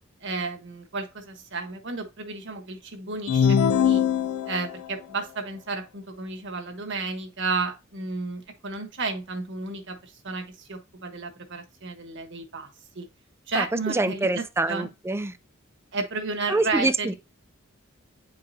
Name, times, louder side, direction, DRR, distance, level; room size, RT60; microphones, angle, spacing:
voice 1, 0.2-4.0 4.5-12.7 12.9-13.1 13.5-14.9 15.9-17.1, right 3 dB, 60° right, 1.4 m, -32 dB
Start Computer, 3.3-4.9, left 7 dB, 85° left, 0.4 m, -22 dB
voice 2, 13.5-15.3 16.5-17.1, right 2 dB, 10° right, 0.4 m, -26 dB
9.4 x 4.7 x 2.7 m
head